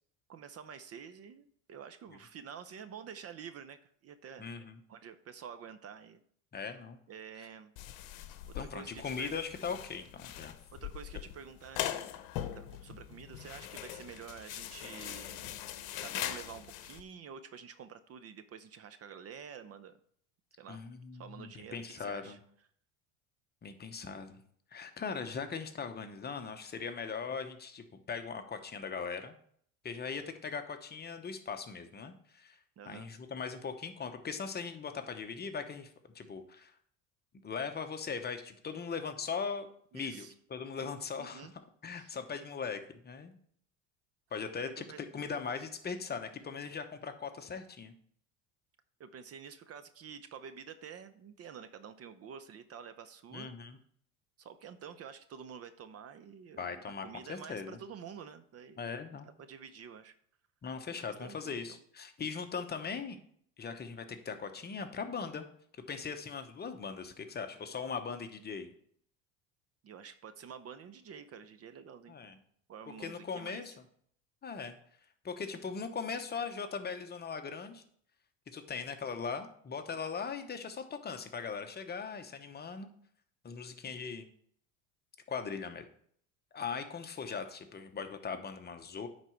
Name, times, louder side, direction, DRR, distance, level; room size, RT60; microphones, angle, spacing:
voice 1, 0.3-4.5 4.9-6.2 6.7-6.8 7.1-7.7 8.5-9.3 10.7-12.1 12.5-15.5 16.0-19.9 20.6-20.8 21.1-22.4 32.8-33.1 39.9-40.3 41.2-41.5 41.9-42.2 44.6-45.0 49.0-53.5 54.4-58.8 59.1-59.2 59.5-60.1 61.0-61.8 69.8-72.2 72.7-73.8, right 7 dB, 40° right, 11 dB, 0.6 m, -49 dB
voice 2, 4.4-4.8 6.5-7.0 8.5-10.6 20.7-22.4 23.6-24.4 24.7-29.3 29.8-32.6 32.9-36.7 37.4-39.7 39.9-41.5 41.8-43.3 44.3-47.9 53.3-53.8 56.6-57.8 58.8-59.3 60.6-63.2 63.6-65.5 65.9-68.7 72.1-72.4 73.0-73.7 74.4-74.7 75.2-77.8 78.5-82.9 83.4-84.3 85.3-85.8 86.5-89.1, left 5 dB, 25° left, 7 dB, 0.9 m, -40 dB
sound 1, 7.8-17.0, left 12 dB, 70° left, 0.9 m, -41 dB
9.6 x 4.1 x 4.5 m, 0.62 s
supercardioid pair, 105°, 39 cm